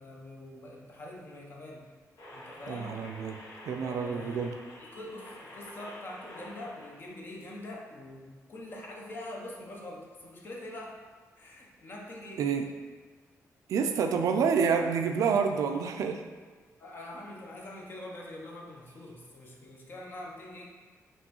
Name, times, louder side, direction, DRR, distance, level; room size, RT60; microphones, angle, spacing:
voice 1, 0.0-1.8 2.3-3.0 3.8-4.4 4.8-11.0 11.4-12.5 14.8-14.9 16.8-20.7, left 1 dB, 35° left, -1 dB, 0.7 m, -44 dB
sound 1, 2.2-7.1 7.4-7.5, left 1 dB, 70° left, 1.0 m, -48 dB
voice 2, 2.7-3.4 3.7-4.5 12.4-12.7 13.7-16.2, right 6 dB, 70° right, 5 dB, 0.3 m, -28 dB
5.2 x 3.0 x 3.0 m, 1.4 s
wide cardioid pair, 175°, 6 cm